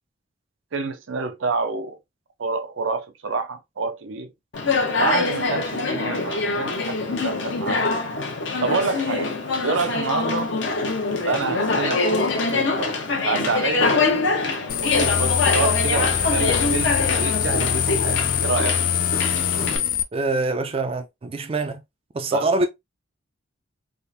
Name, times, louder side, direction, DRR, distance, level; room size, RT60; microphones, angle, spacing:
voice 1, 0.7-2.0 2.4-4.3 4.9-8.0 8.6-9.3 9.6-10.5 11.2-12.9 13.2-13.9 14.8-18.8 22.3-22.5, right 4 dB, 80° right, 0.6 m, -28 dB
Conversation, 4.5-19.8, left 3 dB, 65° left, 0.9 m, -24 dB
sound 1, 14.7-20.0, left 8 dB, 45° left, 0.4 m, -23 dB
voice 2, 20.1-21.8 22.1-22.7, right 2 dB, 30° right, 0.4 m, -24 dB
3.6 x 2.5 x 2.6 m
head